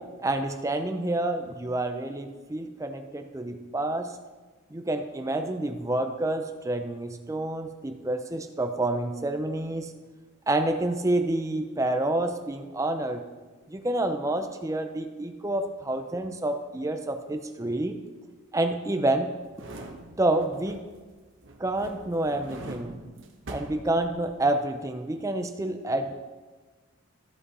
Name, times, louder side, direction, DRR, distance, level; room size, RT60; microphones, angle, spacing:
voice 1, 0.2-4.1 4.7-9.9 10.5-13.2 13.7-18.0 18.5-19.3 20.2-20.8 21.6-23.0 23.5-26.1, right 1 dB, 15° right, 7 dB, 0.4 m, -28 dB
sound 1, 19.4-21.1 21.4-24.5 24.9-25.0, right 1 dB, 65° right, 1.0 m, -43 dB
13.5 x 5.6 x 4.1 m, 1.3 s
head